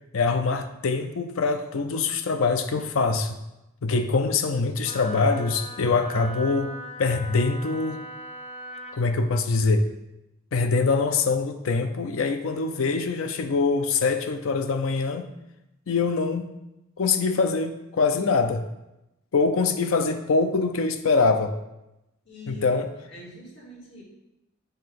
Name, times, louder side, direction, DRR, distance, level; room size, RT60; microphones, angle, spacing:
voice 1, 0.1-3.4 3.8-6.7 7.0-8.0 8.9-9.9 10.5-15.3 15.9-16.5 17.0-18.6 19.3-21.6 22.5-22.9, left 4 dB, 85° left, 8 dB, 0.5 m, -24 dB
Wind instrument woodwind instrument, 4.8-9.0, equal, 30° left, 0.5 m, -39 dB
voice 2, 22.2-22.7 22.9-24.0, left 1 dB, 60° left, -4 dB, 2.1 m, -44 dB
7.7 x 2.8 x 5.2 m, 0.93 s
head